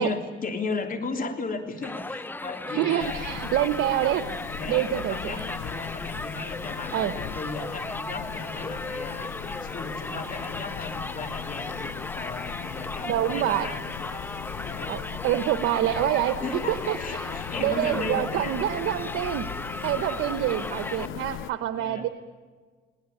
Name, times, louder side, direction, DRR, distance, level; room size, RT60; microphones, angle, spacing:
voice 1, 0.0-3.3 4.5-9.3 9.6-14.2 14.6-14.9 16.4-18.7 19.9-20.2 21.7-22.1, left 4 dB, 45° left, 5 dB, 3.4 m, -35 dB
Crowd, 1.8-21.1, left 2 dB, 10° left, 0.6 m, -36 dB
voice 2, 2.7-4.2 4.6-5.4 6.9-7.1 13.0-13.7 14.9-16.4 16.7-17.3 17.6-19.5 19.8-22.1, right 12 dB, 90° right, 10 dB, 0.9 m, -26 dB
sound 1, 3.0-21.5, left 11 dB, 85° left, 0.9 m, -39 dB
20.5 x 18.5 x 9.6 m, 1.5 s
cardioid pair, 90°, 20 cm